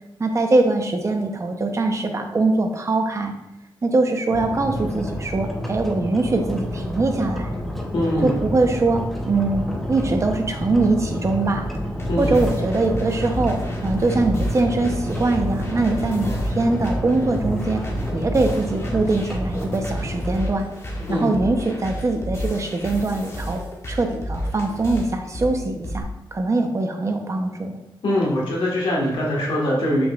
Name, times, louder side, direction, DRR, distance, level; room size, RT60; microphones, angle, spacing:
voice 1, 0.2-3.3 3.8-7.5 8.2-11.7 12.2-17.8 18.1-20.7 21.1-23.6 23.9-27.8, right 2 dB, 35° right, 4 dB, 0.8 m, -22 dB
sound 1, 4.3-20.3, equal, ahead, 0.8 m, -29 dB
voice 2, 7.9-8.3 12.1-12.3 21.1-21.2 28.0-30.1, left 1 dB, 80° left, -4 dB, 1.8 m, -22 dB
sound 2, 11.6-26.0, equal, 30° left, 1.3 m, -31 dB
7.0 x 6.0 x 2.5 m, 0.92 s
wide cardioid pair, 120°, 9 cm